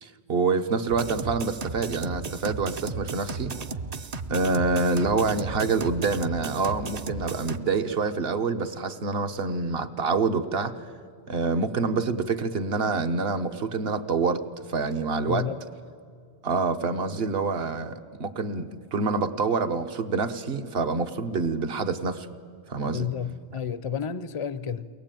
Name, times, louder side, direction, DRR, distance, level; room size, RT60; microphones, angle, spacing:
voice 1, 0.0-3.5 4.3-10.7 11.3-14.4 14.7-15.5 16.4-22.3 22.7-23.1, right 4 dB, 60° right, 8 dB, 1.2 m, -26 dB
sound 1, 0.9-7.6, right 4 dB, 40° right, 0.7 m, -35 dB
voice 2, 15.3-15.6 22.9-24.9, left 7 dB, 35° left, 15 dB, 0.5 m, -31 dB
23.0 x 19.0 x 9.0 m, 2.3 s
omnidirectional pair, 1.1 m